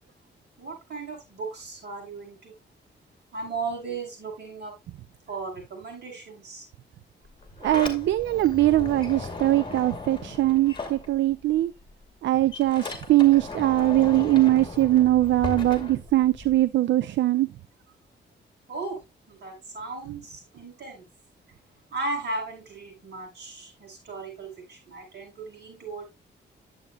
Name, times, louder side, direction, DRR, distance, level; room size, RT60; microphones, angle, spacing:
voice 1, 0.6-2.5 3.3-4.7 5.3-6.7 18.7-19.0 19.3-21.1 21.9-26.1, right 3 dB, 65° right, 5.7 m, -36 dB
Sliding door, 7.3-11.6 11.9-16.6, left 3 dB, 25° left, 2.2 m, -37 dB
voice 2, 7.6-11.7 12.2-17.5, right 15 dB, 85° right, 0.4 m, -21 dB
10.5 x 7.9 x 2.2 m
cardioid pair, 100°, 19 cm